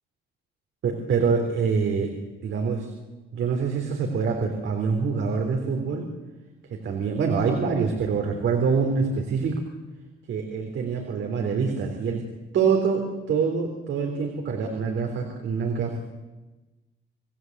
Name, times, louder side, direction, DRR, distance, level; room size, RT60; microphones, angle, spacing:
voice 1, 0.8-2.1 2.4-2.9 3.3-6.1 6.7-9.6 10.3-12.3 12.5-16.0, right 5 dB, 70° right, 3 dB, 3.8 m, -25 dB
29.0 x 17.0 x 8.2 m, 1.1 s
cardioid pair, 90°, 20 cm